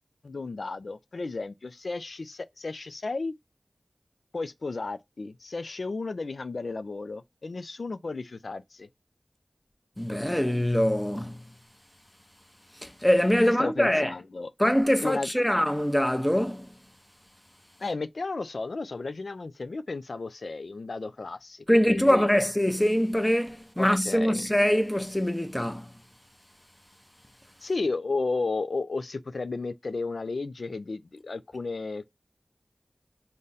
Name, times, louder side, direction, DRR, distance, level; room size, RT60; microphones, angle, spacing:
voice 1, 0.2-3.3 4.3-8.9 13.4-14.5 15.0-15.3 17.8-22.3 23.8-24.4 27.6-32.1, left 3 dB, 85° left, 0.3 m, -33 dB
voice 2, 10.0-11.4 12.8-14.1 14.6-16.7 21.7-25.9, equal, 10° left, 0.6 m, -24 dB
3.7 x 2.1 x 3.9 m
wide cardioid pair, 50°, 0 cm